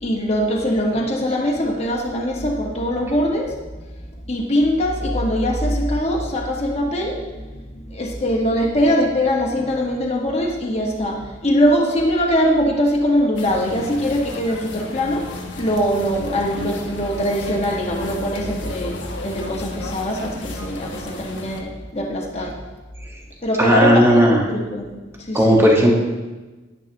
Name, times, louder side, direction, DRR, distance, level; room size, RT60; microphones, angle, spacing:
voice 1, 0.0-3.7 4.3-15.3 15.6-22.5 23.4-24.2 24.5-24.9 25.2-25.6, equal, 35° left, -1 dB, 1.4 m, -22 dB
sound 1, 13.4-21.6, left 2 dB, 70° left, 1.1 m, -34 dB
voice 2, 23.6-24.4 25.3-26.0, equal, 15° right, -2 dB, 1.4 m, -14 dB
10.5 x 10.0 x 3.0 m, 1.2 s
head